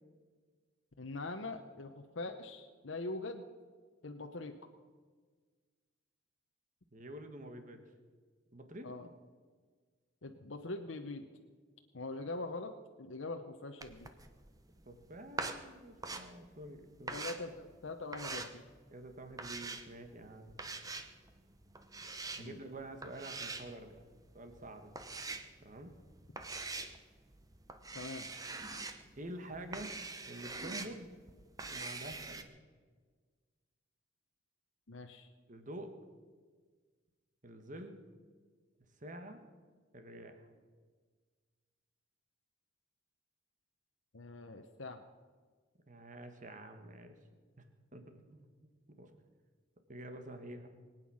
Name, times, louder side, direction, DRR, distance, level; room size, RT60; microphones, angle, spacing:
voice 1, 1.0-3.4 4.0-4.5 8.8-9.1 10.2-11.2 11.9-14.1 17.1-18.6 22.4-22.6 27.9-28.3 34.9-35.3 44.1-45.0, left 2 dB, 75° left, 4 dB, 0.9 m, -43 dB
voice 2, 6.9-7.8 8.5-8.9 14.8-17.2 18.9-20.6 22.3-24.0 24.3-24.9 25.6-25.9 29.1-30.0 30.3-31.1 31.7-32.5 35.5-35.9 37.4-38.0 39.0-39.4 39.9-40.5 45.9-47.2 47.9-48.5 49.0-49.1 49.9-50.7, right 1 dB, 40° right, 7 dB, 1.5 m, -48 dB
sound 1, 13.8-32.4, right 3 dB, 20° right, 0.9 m, -45 dB
22.5 x 9.2 x 6.3 m, 1.5 s
head